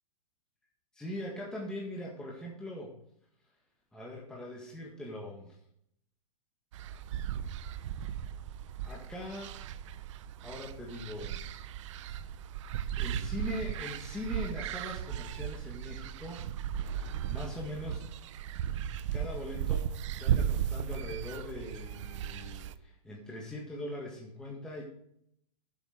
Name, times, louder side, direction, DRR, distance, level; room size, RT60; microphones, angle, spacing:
voice 1, 0.9-2.9 3.9-5.6 8.8-9.6 10.4-11.5 13.0-16.4 16.8-18.1 19.1-24.8, left 1 dB, 5° left, -3 dB, 1.7 m, -41 dB
sound 1, 6.7-22.8, right 9 dB, 50° right, 0.7 m, -36 dB
10.5 x 7.7 x 5.1 m, 0.72 s
hypercardioid pair, 140°, 20 cm